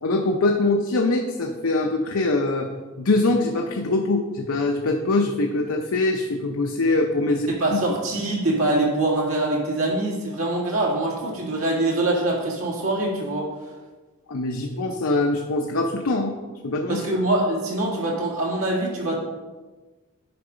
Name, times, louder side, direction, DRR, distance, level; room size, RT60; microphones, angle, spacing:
voice 1, 0.0-2.7 3.0-7.8 14.3-16.3 16.6-17.1, left 2 dB, 75° left, 2 dB, 0.7 m, -23 dB
voice 2, 7.5-13.5 16.9-19.2, right 2 dB, 70° right, -3 dB, 2.1 m, -24 dB
10.5 x 4.0 x 5.0 m, 1.3 s
head